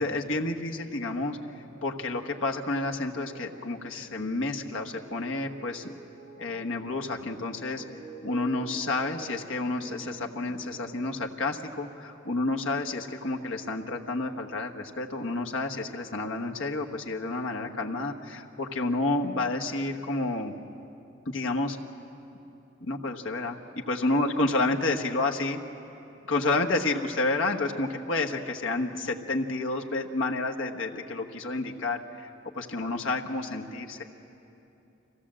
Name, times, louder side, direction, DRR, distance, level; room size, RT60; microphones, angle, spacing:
voice 1, 0.0-1.4 1.8-5.9 6.4-7.8 8.2-20.5 21.3-21.8 22.8-23.6 23.9-25.6 26.3-32.3 32.6-34.0, left 2 dB, 80° left, 2 dB, 1.3 m, -30 dB
sound 1, 1.5-11.1, right 3 dB, 75° right, 2.3 m, -48 dB
25.0 x 17.0 x 7.5 m, 2.8 s
head